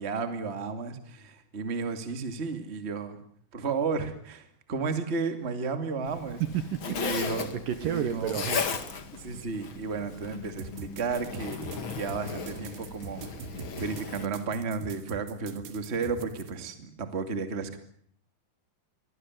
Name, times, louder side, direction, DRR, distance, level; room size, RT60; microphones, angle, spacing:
voice 1, 0.0-3.2 3.5-6.4 6.9-7.5 7.8-8.4 9.1-11.6 11.9-13.3 13.8-17.8, right 4 dB, 20° right, 8 dB, 1.9 m, -33 dB
Zipper (clothing), 6.1-14.3, left 6 dB, 40° left, 2.1 m, -36 dB
voice 2, 6.4-6.8 7.7-9.0, right 10 dB, 65° right, 11 dB, 2.6 m, -31 dB
sound 1, 10.6-16.5, right 6 dB, 80° right, 3.9 m, -42 dB
24.0 x 19.0 x 9.5 m, 0.63 s
omnidirectional pair, 4.7 m